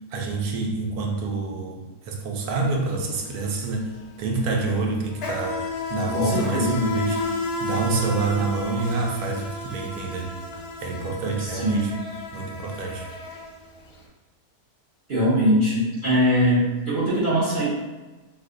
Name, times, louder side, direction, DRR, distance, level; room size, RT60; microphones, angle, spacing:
voice 1, 0.1-3.9 4.2-5.6 5.9-7.2 7.6-10.4 10.8-12.0 12.3-13.1, right 3 dB, 75° right, 1 dB, 1.0 m, -27 dB
Insect, 2.5-2.7 3.0-14.0, left 2 dB, 65° left, 0.6 m, -33 dB
voice 2, 6.1-6.9 11.4-11.9 15.1-17.7, equal, 45° right, -9 dB, 0.7 m, -22 dB
2.7 x 2.2 x 3.6 m, 1.2 s
omnidirectional pair, 1.7 m